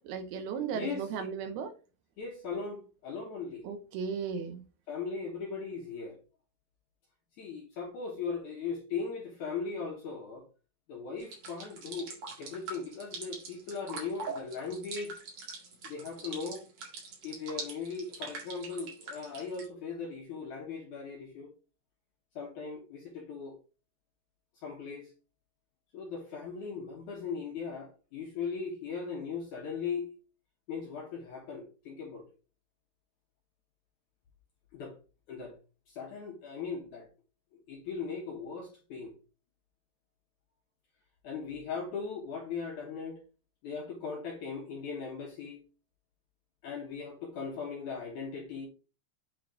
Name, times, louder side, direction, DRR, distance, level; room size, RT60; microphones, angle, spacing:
voice 1, 0.0-1.7 3.6-4.6, right 6 dB, 80° right, 2.5 m, -36 dB
voice 2, 0.7-1.3 2.2-3.7 4.9-6.2 7.4-10.5 10.9-15.2 15.8-16.6 17.2-21.5 22.4-23.6 24.6-25.1 25.9-30.1 30.7-32.3 34.7-35.0 35.3-35.6 35.9-37.1 37.5-39.1 41.2-43.2 43.6-45.6 46.6-48.7, left 5 dB, 70° left, 1.9 m, -38 dB
sound 1, 11.2-19.7, right 4 dB, 50° right, 2.8 m, -43 dB
9.0 x 3.8 x 3.7 m
omnidirectional pair, 4.9 m